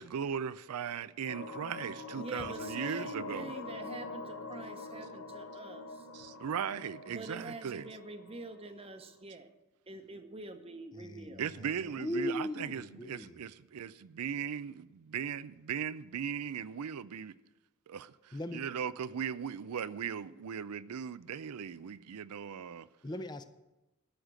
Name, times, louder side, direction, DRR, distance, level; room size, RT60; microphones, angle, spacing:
voice 1, 0.0-3.5 6.1-7.9 11.4-17.3 17.9-22.9, right 7 dB, 85° right, 0.4 m, -38 dB
sound 1, 1.3-8.8, left 3 dB, 65° left, 1.1 m, -44 dB
voice 2, 2.2-6.1 7.1-9.5 9.9-11.4, right 2 dB, 25° right, 0.9 m, -46 dB
voice 3, 10.9-13.4 18.3-18.6 23.0-23.4, left 1 dB, 20° left, 0.6 m, -39 dB
13.0 x 6.6 x 7.4 m
head